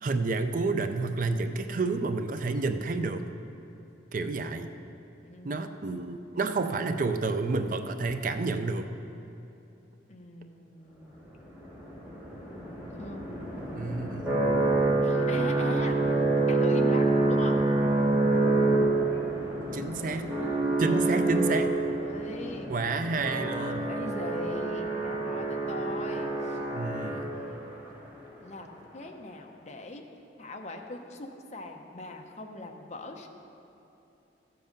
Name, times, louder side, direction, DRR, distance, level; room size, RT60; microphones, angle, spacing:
voice 1, 0.0-3.2 4.1-4.7 5.4-8.9 13.7-14.4 19.7-20.3 20.8-21.7 22.7-23.9 26.7-27.3, right 3 dB, 45° right, 8 dB, 0.5 m, -30 dB
voice 2, 5.2-5.9 10.1-11.2 12.9-13.9 15.0-16.0 16.5-17.7 20.9-21.1 21.8-22.7 23.9-26.6 26.9-27.7 28.4-30.0 30.4-33.3, left 2 dB, 40° left, 3 dB, 0.8 m, -41 dB
sound 1, 11.4-27.7, right 2 dB, 10° right, 2.1 m, -27 dB
13.5 x 7.7 x 5.3 m, 2.9 s
head